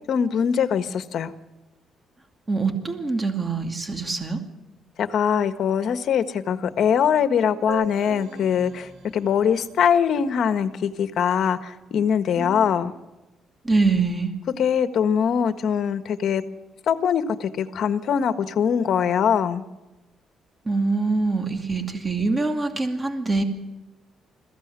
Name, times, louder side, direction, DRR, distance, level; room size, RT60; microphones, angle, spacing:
voice 1, 0.1-1.3 5.0-12.9 14.6-16.4 16.9-19.6, left 7 dB, 65° left, 10 dB, 1.5 m, -22 dB
voice 2, 2.5-4.4 12.4-12.7 13.6-14.3 20.7-23.4, right 3 dB, 20° right, 5 dB, 2.5 m, -24 dB
sound 1, 7.7-11.2, right 6 dB, 70° right, 5.9 m, -42 dB
22.0 x 15.5 x 9.8 m, 1.1 s
cardioid pair, 90°, 0 cm